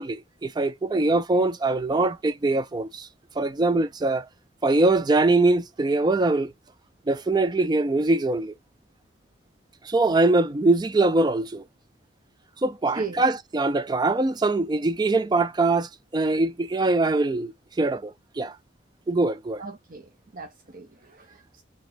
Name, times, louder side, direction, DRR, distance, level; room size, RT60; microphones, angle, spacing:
voice 1, 0.0-3.1 3.4-4.3 4.6-6.5 7.1-8.5 9.8-11.6 12.6-17.5 17.8-18.5 19.1-19.6, right 2 dB, 20° right, 0.3 m, -23 dB
voice 2, 19.6-21.6, right 4 dB, 45° right, 0.7 m, -37 dB
4.0 x 2.7 x 4.5 m
head